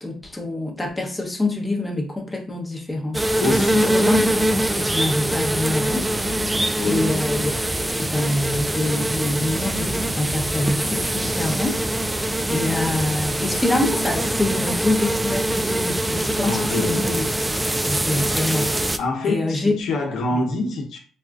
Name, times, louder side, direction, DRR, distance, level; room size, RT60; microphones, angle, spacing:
voice 1, 0.0-3.2 3.5-6.1 6.9-7.5 8.0-12.1 12.5-17.2 17.6-18.9 19.2-19.7, left 2 dB, 10° left, 0.9 m, -25 dB
sound 1, 3.1-19.0, right 1 dB, 10° right, 0.3 m, -23 dB
voice 2, 3.4-3.9 6.8-7.2 16.4-17.3 19.0-21.0, left 2 dB, 75° left, 0.8 m, -26 dB
4.2 x 2.4 x 2.4 m
cardioid pair, 90°, 0 cm